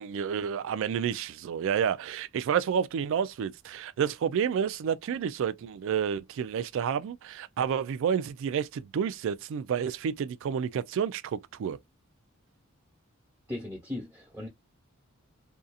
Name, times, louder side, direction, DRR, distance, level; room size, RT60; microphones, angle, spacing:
voice 1, 0.0-11.8, right 7 dB, 65° right, 0.3 m, -30 dB
voice 2, 13.5-14.5, left 1 dB, 15° right, 1.2 m, -37 dB
2.7 x 2.4 x 2.3 m
head